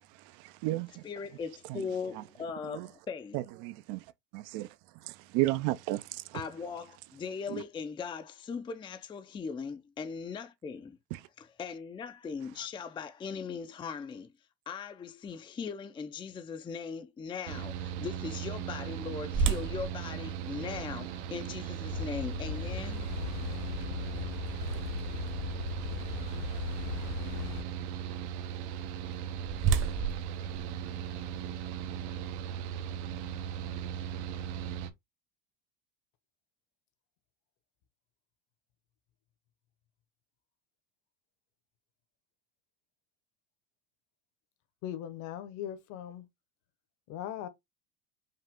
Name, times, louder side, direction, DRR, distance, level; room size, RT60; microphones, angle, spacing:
voice 1, 0.3-1.0 1.7-1.8 2.2-2.3 2.7-2.9 3.3-4.0 4.3-4.7 5.0-6.4 7.5-7.6 11.1-11.2, right 18 dB, 60° right, 0.6 m, -33 dB
voice 2, 1.0-3.4 6.3-11.0 11.4-14.3 14.7-23.1, left 5 dB, 15° left, 0.5 m, -39 dB
Mechanical fan, 17.5-34.9, right 9 dB, 80° right, 1.0 m, -38 dB
sound 1, 19.3-25.3 25.8-25.9 26.5-26.8 28.8-31.5, right 6 dB, 35° right, 1.0 m, -35 dB
sound 2, 21.9-27.6, left 9 dB, 85° left, 0.6 m, -38 dB
voice 3, 44.8-46.3 47.1-47.5, left 10 dB, 55° left, 1.2 m, -39 dB
5.6 x 2.4 x 3.6 m
supercardioid pair, 120°, 34 cm